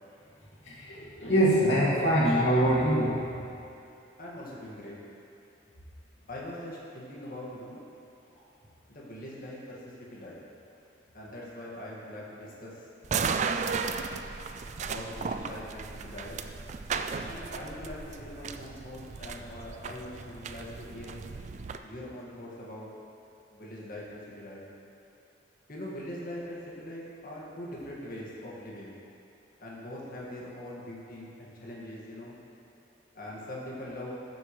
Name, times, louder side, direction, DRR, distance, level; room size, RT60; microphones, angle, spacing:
voice 1, 0.6-3.5, equal, 75° left, -7 dB, 2.5 m, -24 dB
voice 2, 4.2-5.0 6.3-7.8 8.9-10.4 11.1-12.9 14.8-16.4 17.2-21.2 21.8-22.9 23.5-24.7 25.7-29.0 29.6-32.4 33.1-34.1, left 1 dB, 50° left, -5 dB, 1.9 m, -42 dB
sound 1, 13.0-21.8, right 5 dB, 40° right, 0.3 m, -35 dB
14.0 x 7.7 x 3.2 m, 2.7 s
head